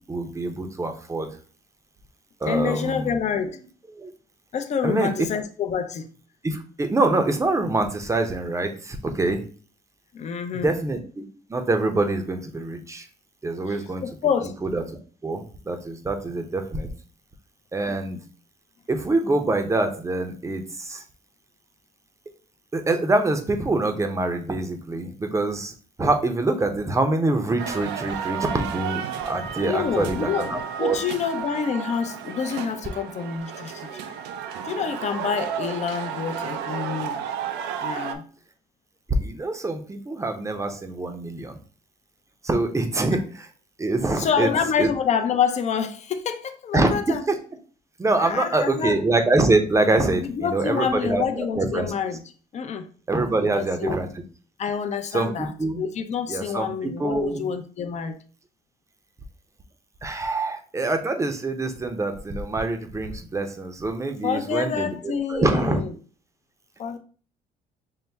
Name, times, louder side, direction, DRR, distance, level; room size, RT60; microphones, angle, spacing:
voice 1, 0.1-1.3 2.4-3.1 4.0-4.1 4.8-5.1 6.4-9.4 10.6-11.2 11.5-13.1 13.4-14.0 14.6-14.8 15.2-16.9 17.7-18.2 18.9-21.0 22.7-25.7 26.0-31.0 39.2-41.6 42.4-43.5 43.8-44.5 44.8-44.9 46.7-47.4 48.0-51.9 53.1-54.1 55.1-55.8 56.3-57.5 60.0-65.8, right 2 dB, 15° right, 0.6 m, -25 dB
voice 2, 2.5-3.6 4.5-6.1 10.1-10.8 13.7-14.5 17.9-18.0 29.6-33.9 34.6-37.3 37.8-38.2 44.2-47.2 48.2-49.0 50.2-52.2 52.5-52.9 53.2-54.0 54.6-58.2 64.2-65.9 66.8-67.0, left 7 dB, 40° left, 0.6 m, -27 dB
sound 1, 27.6-38.1, right 8 dB, 85° right, 0.5 m, -32 dB
5.5 x 2.1 x 3.3 m
cardioid pair, 110°, 17 cm